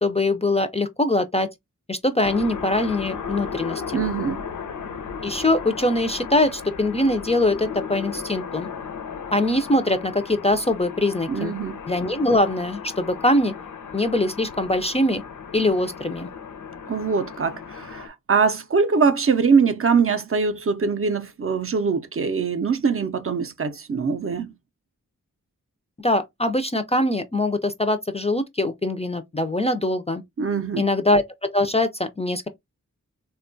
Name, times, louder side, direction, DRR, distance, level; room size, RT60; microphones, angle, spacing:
voice 1, 0.0-1.5 1.9-4.0 5.2-8.7 9.3-11.5 11.9-13.5 13.9-15.2 15.5-16.3 26.0-30.2 30.8-32.5, left 1 dB, 20° left, 0.3 m, -22 dB
sound 1, 2.2-18.1, left 6 dB, 70° left, 0.5 m, -35 dB
voice 2, 3.9-4.4 11.3-11.8 16.9-24.5 30.4-30.9, right 5 dB, 45° right, 0.4 m, -22 dB
3.5 x 2.2 x 2.5 m
wide cardioid pair, 70°, 32 cm